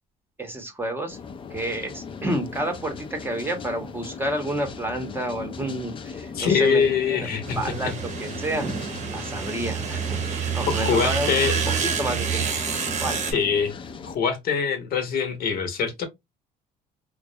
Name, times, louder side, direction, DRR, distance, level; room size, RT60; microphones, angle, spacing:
voice 1, 0.4-1.2 1.5-7.3 7.5-8.7 9.1-11.3 11.6-12.6 13.0-13.2, right 1 dB, 15° right, 0.7 m, -30 dB
sound 1, 1.1-14.2, left 5 dB, 30° left, 0.3 m, -38 dB
voice 2, 6.3-7.6 10.7-11.5 13.3-13.7 14.0-16.1, left 6 dB, 65° left, 0.7 m, -23 dB
sound 2, 7.4-13.3, right 6 dB, 45° right, 0.8 m, -28 dB
2.3 x 2.1 x 2.6 m
cardioid pair, 110°, 17 cm